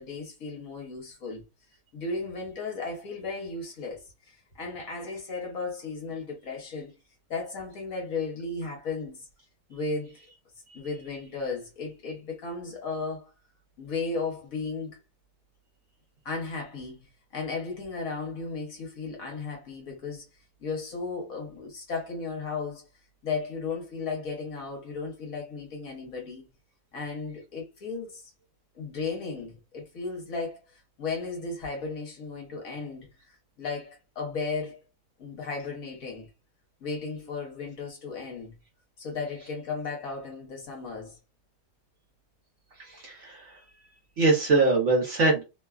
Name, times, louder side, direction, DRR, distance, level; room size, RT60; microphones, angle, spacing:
voice 1, 0.0-1.4 1.9-6.9 7.3-9.3 9.7-10.2 10.7-13.3 13.8-15.0 16.2-20.2 20.6-22.9 23.2-26.5 26.9-28.3 28.7-34.8 35.2-36.3 36.8-38.5 39.0-41.2, left 4 dB, 60° left, 1.2 m, -35 dB
voice 2, 42.8-43.6 44.2-45.4, right 3 dB, 55° right, 0.9 m, -23 dB
2.9 x 2.2 x 2.3 m
omnidirectional pair, 1.8 m